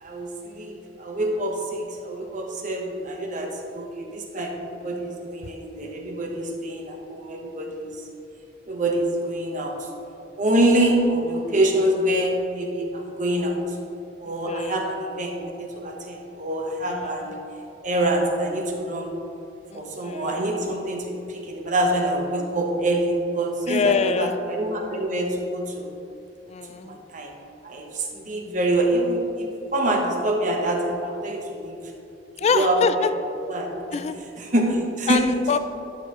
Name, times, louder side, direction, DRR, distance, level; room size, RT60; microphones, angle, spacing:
voice 1, 0.0-8.0 8.7-9.8 10.4-13.6 14.2-17.4 17.8-19.1 19.7-25.9 26.8-27.3 27.6-31.8 32.5-32.7 33.5-33.7 34.4-35.2, right 1 dB, 45° right, 1 dB, 1.0 m, -25 dB
voice 2, 14.5-14.8 16.9-17.3 19.7-20.5 23.7-24.3 26.5-27.0 32.4-33.1 33.9-34.2 35.1-35.6, left 5 dB, 35° left, 11 dB, 0.3 m, -25 dB
11.5 x 6.6 x 3.0 m, 2.9 s
head